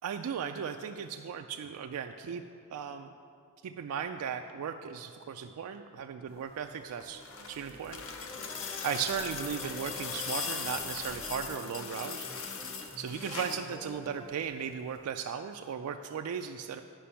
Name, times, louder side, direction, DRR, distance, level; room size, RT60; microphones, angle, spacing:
voice 1, 0.0-2.4 2.7-3.1 3.6-7.2 7.5-8.0 8.8-12.6 13.0-16.8, right 7 dB, 75° right, 6 dB, 0.3 m, -36 dB
sound 1, 6.8-11.5, left 2 dB, 30° left, 0.9 m, -53 dB
sound 2, 6.9-13.7 15.0-15.1, left 6 dB, 65° left, 0.7 m, -39 dB
sound 3, 8.3-14.3, equal, 10° left, 0.6 m, -48 dB
10.0 x 5.1 x 5.6 m, 2.4 s
head